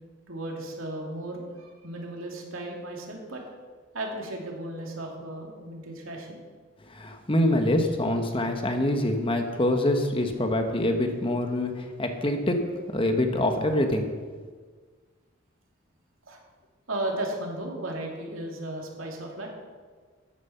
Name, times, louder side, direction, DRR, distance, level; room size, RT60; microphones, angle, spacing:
voice 1, 0.3-3.4 3.9-6.4 16.3-16.4 16.9-19.5, right 1 dB, 90° right, 0 dB, 2.7 m, -35 dB
voice 2, 6.9-12.6 12.9-14.1, left 1 dB, 25° left, 5 dB, 1.2 m, -25 dB
13.5 x 9.4 x 5.8 m, 1.5 s
head